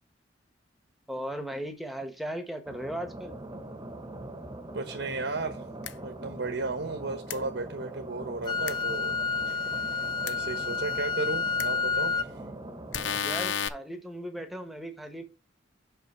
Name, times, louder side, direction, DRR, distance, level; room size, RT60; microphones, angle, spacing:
voice 1, 1.1-3.3 13.2-15.2, equal, ahead, 1.2 m, -37 dB
sound 1, 2.7-13.2, right 1 dB, 20° right, 1.1 m, -42 dB
voice 2, 4.7-5.6 6.0-9.2 9.5-12.4, right 3 dB, 75° right, 1.1 m, -35 dB
sound 2, 5.8-5.9 7.3-7.4 8.7-8.8 10.3-10.4 11.6-11.7 12.9-13.7, left 8 dB, 80° left, 0.6 m, -30 dB
Wind instrument woodwind instrument, 8.5-12.3, left 5 dB, 25° left, 0.4 m, -30 dB
5.8 x 5.6 x 5.6 m
head